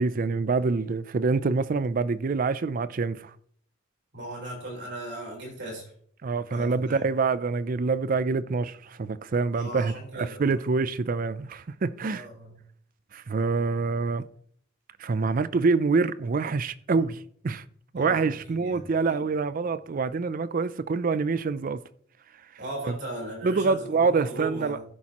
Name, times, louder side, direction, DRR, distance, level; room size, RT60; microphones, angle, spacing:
voice 1, 0.0-3.3 6.2-12.3 13.1-14.2 15.0-17.6 17.9-21.8 22.8-23.0 23.4-24.8, right 4 dB, 45° right, 0.4 m, -26 dB
voice 2, 4.1-5.8 6.5-7.0 9.5-10.6 12.1-12.6 16.9-17.1 17.9-19.3 22.6-24.8, right 2 dB, 60° right, 4.1 m, -38 dB
11.5 x 9.8 x 3.0 m
head